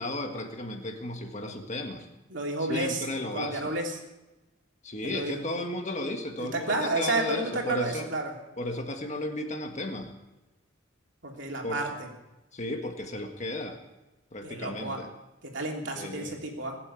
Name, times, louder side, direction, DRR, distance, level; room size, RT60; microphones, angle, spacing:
voice 1, 0.0-2.1 2.6-3.8 4.8-8.1 8.6-10.1 11.6-11.8 12.5-13.8 14.3-15.1 15.9-16.4, left 1 dB, 35° left, 4 dB, 1.7 m, -34 dB
voice 2, 2.3-3.0 3.3-3.9 5.0-5.4 6.4-8.3 11.2-12.1 14.4-15.0 15.4-16.8, right 2 dB, 65° right, 0 dB, 3.1 m, -31 dB
21.0 x 7.5 x 8.4 m, 1.0 s
head